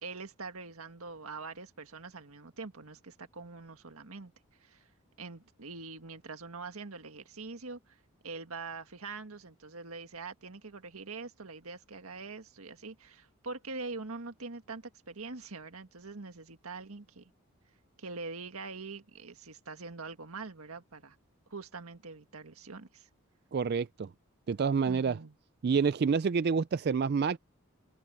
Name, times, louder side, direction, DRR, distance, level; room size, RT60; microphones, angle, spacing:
voice 1, 0.0-4.3 4.6-4.8 5.2-17.3 18.0-21.2 21.5-23.1 24.8-25.3, right 3 dB, 85° right, 1.8 m, -44 dB
voice 2, 23.5-24.1 24.5-25.2 25.6-27.4, right 5 dB, 45° right, 0.3 m, -28 dB
open air
head